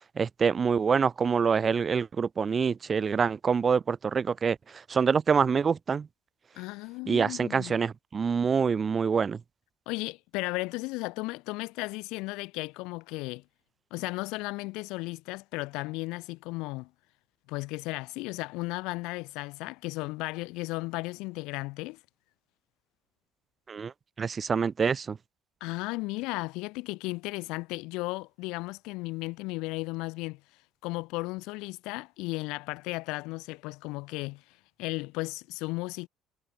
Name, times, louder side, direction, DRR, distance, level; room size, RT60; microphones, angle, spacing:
voice 1, 0.2-4.6 4.9-6.1 7.1-9.4 23.7-23.9 24.2-25.2, right 6 dB, 30° right, 0.4 m, -26 dB
voice 2, 6.5-7.8 9.9-13.4 13.9-16.9 17.5-22.0 25.6-30.4 30.8-34.4 34.8-36.1, left 23 dB, 80° left, 0.8 m, -35 dB
cardioid pair, 125°, 0 cm